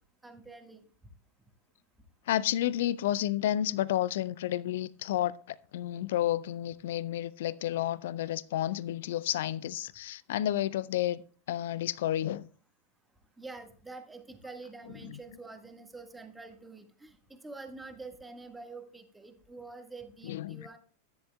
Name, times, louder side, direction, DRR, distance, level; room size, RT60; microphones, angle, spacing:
voice 1, 0.2-0.8 13.4-20.8, right 3 dB, 10° right, 1.6 m, -47 dB
voice 2, 2.3-11.2 11.5-12.5 15.0-15.2 20.2-20.7, left 12 dB, 55° left, 0.4 m, -31 dB
14.5 x 10.0 x 2.3 m
figure-of-eight pair, 90°, 0 cm